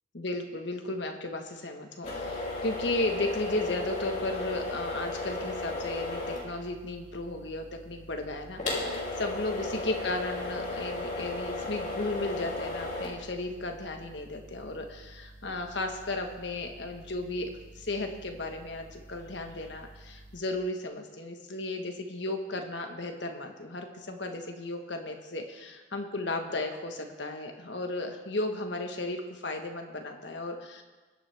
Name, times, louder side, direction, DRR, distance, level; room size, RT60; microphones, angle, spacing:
voice 1, 0.1-17.5 17.7-30.8, left 2 dB, 70° left, 4 dB, 1.5 m, -34 dB
sound 1, 2.0-20.4, left 2 dB, 40° left, 3.2 m, -37 dB
22.0 x 9.1 x 3.5 m, 1.3 s
head